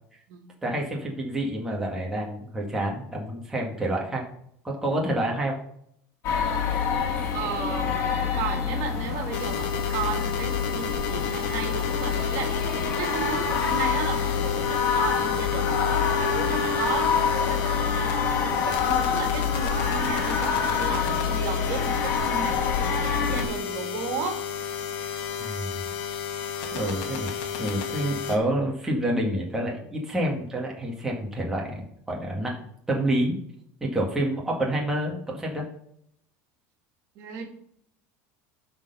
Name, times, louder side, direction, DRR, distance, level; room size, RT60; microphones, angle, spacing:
voice 1, 0.6-4.2 4.6-5.6 25.4-25.9 26.7-32.5 32.9-33.4 33.8-35.7, right 1 dB, 5° right, -3 dB, 2.0 m, -28 dB
sound 1, 6.2-23.5, left 6 dB, 45° left, 2.0 m, -26 dB
voice 2, 7.3-17.1 17.4-24.4 37.2-37.5, right 6 dB, 55° right, 3 dB, 2.2 m, -34 dB
sound 2, 9.3-28.4, left 7 dB, 65° left, 1.7 m, -32 dB
12.0 x 4.5 x 5.5 m, 0.71 s
cardioid pair, 150°, 7 cm